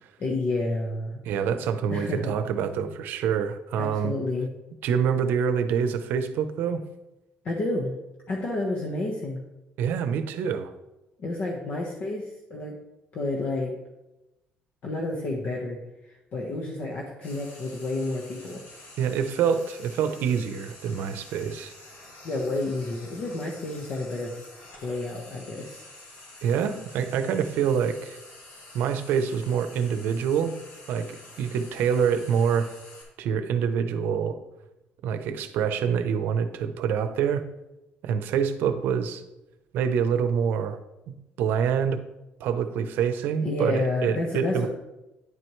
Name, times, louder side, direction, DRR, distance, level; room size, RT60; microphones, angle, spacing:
voice 1, 0.2-1.2 1.9-2.3 3.8-4.5 7.4-8.0 8.3-9.4 11.2-12.8 13.1-13.7 14.8-15.8 16.1-18.6 22.2-24.4 24.8-25.8 43.4-44.7, left 2 dB, 45° left, -1 dB, 1.2 m, -30 dB
voice 2, 1.2-4.1 4.8-6.8 9.8-10.7 19.0-21.7 26.4-28.2 28.7-30.6 30.9-32.7 33.2-34.4 35.0-37.5 38.0-39.2 39.7-40.8 41.1-42.0 42.4-44.7, right 7 dB, 65° right, 10 dB, 0.7 m, -26 dB
Frying (food), 17.2-33.0, left 2 dB, 60° left, 2.9 m, -48 dB
9.8 x 7.8 x 3.2 m, 0.95 s
cardioid pair, 165°, 4 cm